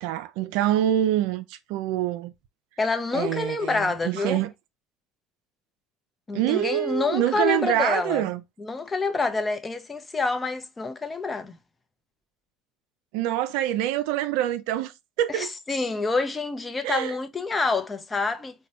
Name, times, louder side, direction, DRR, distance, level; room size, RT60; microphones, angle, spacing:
voice 1, 0.0-2.3 3.1-4.5 6.3-8.4 13.1-14.9 15.2-15.5 16.8-17.1, right 12 dB, 75° right, 0.3 m, -25 dB
voice 2, 2.8-4.4 6.3-8.2 8.6-11.6 15.3-18.5, left 3 dB, 20° left, 0.6 m, -27 dB
3.0 x 2.2 x 2.8 m
hypercardioid pair, 80°, 0 cm